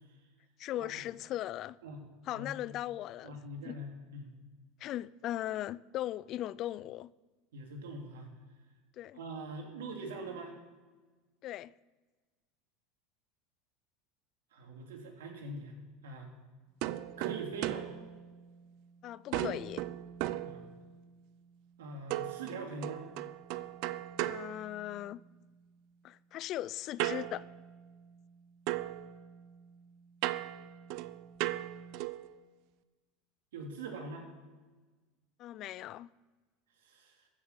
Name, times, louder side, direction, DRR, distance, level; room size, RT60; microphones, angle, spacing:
voice 1, 0.6-1.8 2.2-3.4 3.6-3.8 4.8-7.1 9.0-9.2 11.4-11.7 19.0-19.9 24.2-25.2 26.0-27.4 35.4-36.1, left 13 dB, 50° left, 0.4 m, -38 dB
voice 2, 3.2-4.3 7.5-8.3 9.1-10.5 14.5-15.7 16.0-16.3 17.2-17.9 20.4-20.6 21.8-23.0 33.5-34.3 36.8-37.2, right 2 dB, 90° right, 2.9 m, -43 dB
sound 1, 16.8-18.9 19.3-21.2 22.1-25.3 27.0-28.4 28.7-32.3, right 15 dB, 65° right, 0.6 m, -38 dB
14.0 x 6.6 x 8.3 m
supercardioid pair, 110°, 0 cm